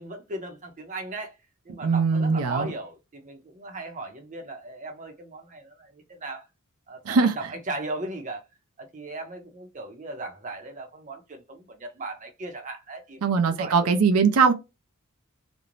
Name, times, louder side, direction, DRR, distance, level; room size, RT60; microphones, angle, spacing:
voice 1, 0.0-1.3 1.6-6.5 6.9-8.4 8.8-13.3 13.6-14.0, right 2 dB, 35° right, 0.6 m, -37 dB
voice 2, 1.8-2.7 7.1-7.3 13.2-14.5, right 5 dB, 80° right, 0.4 m, -21 dB
2.5 x 2.0 x 3.0 m
head